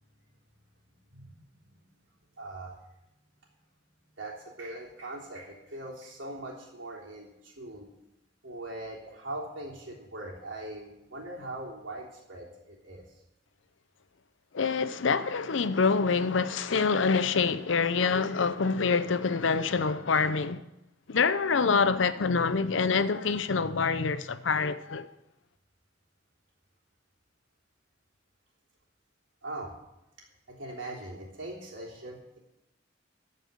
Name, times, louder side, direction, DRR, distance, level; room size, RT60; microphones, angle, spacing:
voice 1, 1.1-1.4 1.8-1.9 2.3-3.0 4.2-7.9 8.4-13.0 29.4-29.7 30.5-32.4, right 2 dB, 75° right, 3.4 m, -41 dB
voice 2, 14.5-20.6 21.1-25.1, left 5 dB, 75° left, 0.6 m, -26 dB
14.0 x 5.4 x 8.2 m
head